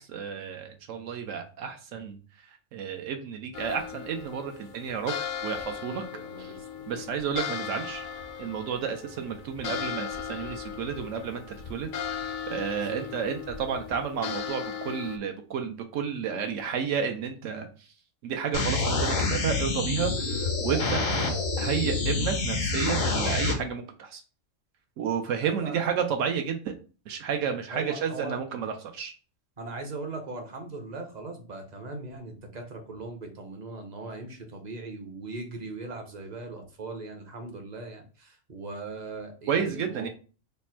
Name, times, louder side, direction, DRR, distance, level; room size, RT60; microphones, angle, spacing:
voice 1, 0.0-2.2 2.7-5.1 5.4-6.0 6.4-6.5 6.9-8.1 8.4-11.4 11.7-17.7 18.2-21.0 21.6-24.2 25.0-26.7 27.1-29.1 39.5-40.1, right 7 dB, 75° right, 5 dB, 0.9 m, -31 dB
sound 1, 3.5-15.2, left 7 dB, 65° left, 0.5 m, -37 dB
voice 2, 5.9-7.0 12.7-13.1 25.4-25.9 27.7-28.4 29.6-40.1, right 3 dB, 45° right, 3 dB, 0.6 m, -39 dB
sound 2, 18.5-23.5, left 3 dB, 90° left, 1.3 m, -27 dB
3.3 x 2.1 x 4.2 m, 0.36 s
omnidirectional pair, 1.3 m